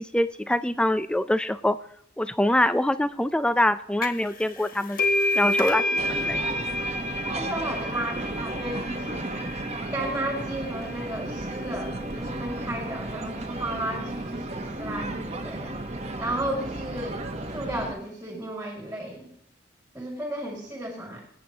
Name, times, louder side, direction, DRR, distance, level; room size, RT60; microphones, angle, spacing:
voice 1, 0.0-1.8 2.2-5.0 5.3-6.4, left 1 dB, 5° left, 12 dB, 0.3 m, -24 dB
sound 1, 4.0-4.3 4.6-11.9, left 1 dB, 50° left, 1.2 m, -29 dB
sound 2, 6.0-17.9, right 2 dB, 35° right, 1.0 m, -34 dB
voice 2, 7.3-9.5 9.9-15.8 16.2-19.3 19.9-21.3, right 1 dB, 10° right, -1 dB, 2.2 m, -34 dB
23.5 x 8.4 x 2.9 m, 0.69 s
head